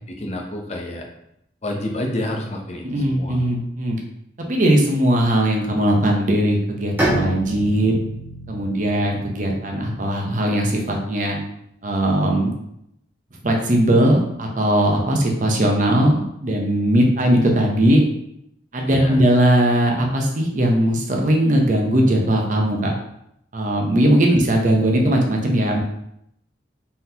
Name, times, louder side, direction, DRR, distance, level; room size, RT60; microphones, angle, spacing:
voice 1, 0.1-1.1 1.6-3.4 18.8-19.2, left 1 dB, 35° left, 1 dB, 0.7 m, -29 dB
voice 2, 2.8-4.0 4.5-7.9 8.5-11.4 11.8-12.5 13.4-18.0 18.7-22.9 23.5-25.8, right 1 dB, 45° right, 1 dB, 0.8 m, -19 dB
Bowed string instrument, 7.0-10.6, right 1 dB, 10° right, 1.1 m, -28 dB
4.2 x 3.9 x 2.8 m, 0.76 s
head